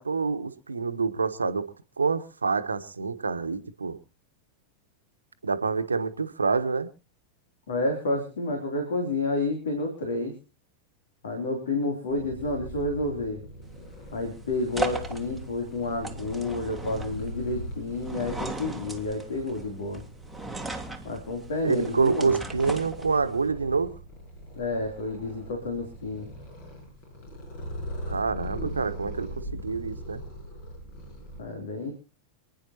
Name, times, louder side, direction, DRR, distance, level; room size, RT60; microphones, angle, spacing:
voice 1, 0.0-1.7 2.0-4.0 5.4-6.9 21.6-23.9 28.1-30.2, right 4 dB, 75° right, 9 dB, 1.2 m, -27 dB
voice 2, 7.7-10.3 11.2-13.4 14.1-20.0 21.0-22.4 24.6-26.3 31.4-31.9, left 2 dB, 65° left, 3 dB, 3.3 m, -30 dB
Purr, 12.1-31.4, equal, 50° left, 6.8 m, -41 dB
sound 1, 13.6-23.5, right 2 dB, ahead, 1.7 m, -38 dB
28.0 x 9.9 x 2.9 m, 0.32 s
figure-of-eight pair, 90°, 0 cm